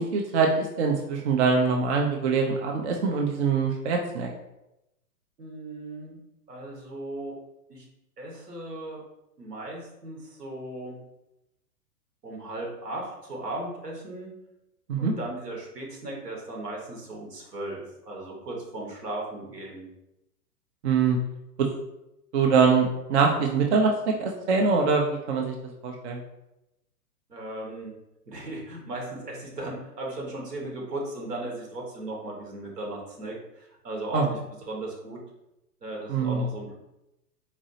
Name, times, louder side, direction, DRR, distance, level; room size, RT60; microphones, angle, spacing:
voice 1, 0.0-4.3 14.9-15.1 20.8-21.2 21.6-21.7 22.3-23.9 24.2-25.5 25.8-26.2 34.1-34.3 36.1-36.4, right 5 dB, 45° right, 1 dB, 0.5 m, -23 dB
voice 2, 5.4-6.2 6.5-7.3 7.7-7.9 8.2-9.0 9.4-11.0 12.2-14.3 15.0-19.8 27.3-27.9 28.3-35.2 35.8-36.7, right 2 dB, 80° right, -1 dB, 1.4 m, -36 dB
4.1 x 2.6 x 2.7 m, 0.88 s
figure-of-eight pair, 115°, 47 cm